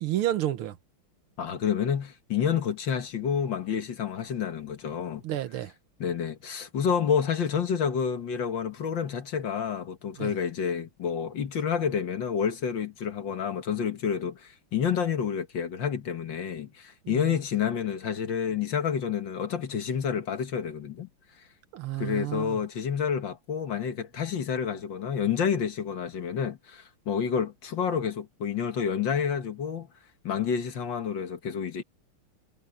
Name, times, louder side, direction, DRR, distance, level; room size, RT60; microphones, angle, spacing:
voice 1, 0.0-0.8 5.2-5.7 10.2-10.3 17.1-17.3 21.7-22.6, right 13 dB, 75° right, 1.8 m, -30 dB
voice 2, 1.4-5.2 6.0-21.1 22.0-29.9 30.2-31.8, left 7 dB, 60° left, 2.2 m, -29 dB
omnidirectional pair, 2.4 m